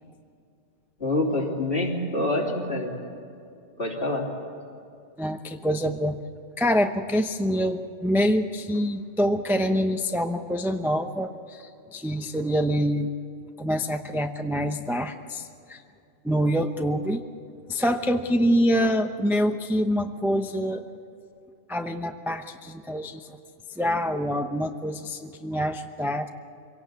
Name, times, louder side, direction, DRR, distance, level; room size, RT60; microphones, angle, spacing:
voice 1, 1.0-3.0 3.8-4.3, left 1 dB, 45° left, -2 dB, 3.6 m, -26 dB
voice 2, 5.2-6.2 6.6-13.1 13.6-15.8 16.2-17.2 17.7-20.9 21.7-23.4 23.7-26.3, equal, ahead, 5 dB, 0.6 m, -26 dB
24.5 x 18.0 x 8.3 m, 2.5 s
omnidirectional pair, 1.3 m